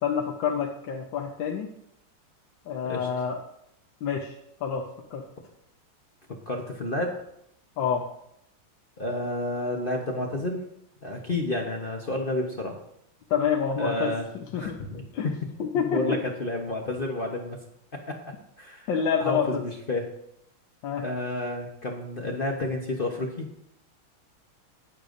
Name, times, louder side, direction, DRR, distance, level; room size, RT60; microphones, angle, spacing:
voice 1, 0.0-1.7 2.7-3.4 4.0-4.3 4.6-4.8 5.1-5.2 7.8-8.0 13.3-14.1 14.5-14.8 15.1-15.3 15.6-16.2 18.9-19.6 20.8-21.0, left 7 dB, 65° left, 2 dB, 1.5 m, -27 dB
voice 2, 6.5-7.2 9.0-10.7 11.0-12.8 13.8-14.3 14.5-15.3 15.7-17.6 17.9-18.2 18.6-18.9 19.2-20.1 21.0-23.5, left 1 dB, 40° left, 1 dB, 0.8 m, -30 dB
20.0 x 6.7 x 2.6 m, 0.75 s
omnidirectional pair, 2.3 m